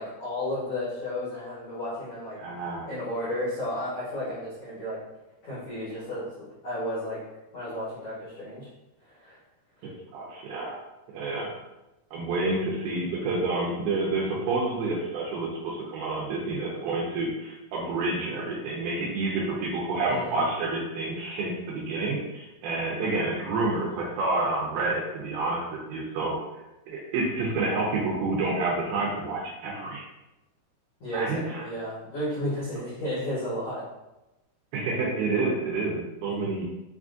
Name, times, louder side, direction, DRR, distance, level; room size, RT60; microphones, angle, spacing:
voice 1, 0.0-2.4 2.8-5.0 5.4-7.2 7.5-8.7 9.0-9.4 20.1-20.5 31.0-33.8, left 1 dB, 75° left, -11 dB, 1.3 m, -33 dB
voice 2, 2.4-2.9 10.1-10.8 11.1-11.5 12.1-26.4 26.9-30.0 31.1-31.7 34.7-36.6, right 3 dB, 80° right, -3 dB, 2.2 m, -29 dB
6.3 x 2.4 x 2.5 m, 0.98 s
omnidirectional pair, 4.8 m